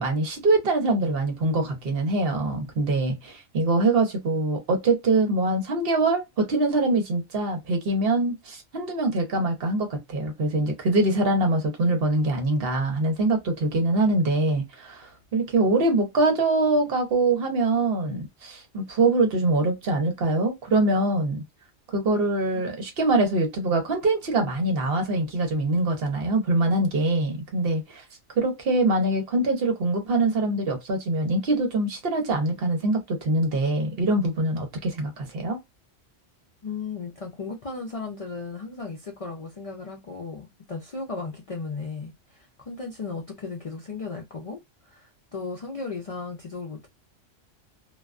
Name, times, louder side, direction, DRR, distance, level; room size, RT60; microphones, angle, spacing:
voice 1, 0.0-21.4 21.9-28.0 28.4-35.6, right 2 dB, 55° right, 0.9 m, -24 dB
voice 2, 36.6-46.9, left 4 dB, 65° left, 0.3 m, -36 dB
2.3 x 2.2 x 2.3 m
omnidirectional pair, 1.2 m